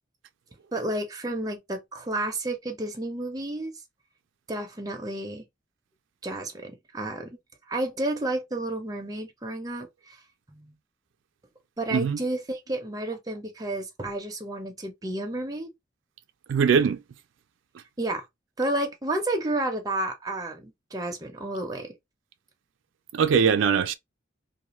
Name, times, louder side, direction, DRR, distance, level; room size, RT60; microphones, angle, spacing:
voice 1, 0.7-3.8 4.5-5.4 6.2-7.4 7.7-10.2 10.5-10.8 11.8-15.7 18.0-18.2 18.6-21.9, right 1 dB, 20° right, 0.7 m, -31 dB
voice 2, 16.5-17.0 23.1-23.9, right 6 dB, 90° right, 0.4 m, -21 dB
2.4 x 2.3 x 2.9 m
head